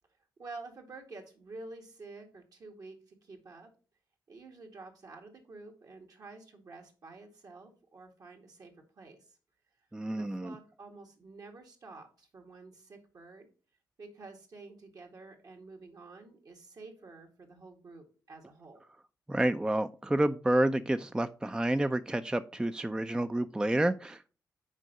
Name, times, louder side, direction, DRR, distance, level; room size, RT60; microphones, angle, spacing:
voice 1, 0.4-3.7 4.3-9.4 10.2-13.5 14.0-18.8, right 3 dB, 60° right, 2 dB, 2.0 m, -49 dB
voice 2, 9.9-10.5 19.3-24.3, right 1 dB, 10° right, 11 dB, 0.4 m, -29 dB
6.3 x 4.5 x 5.2 m, 0.37 s
cardioid pair, 65°, 7 cm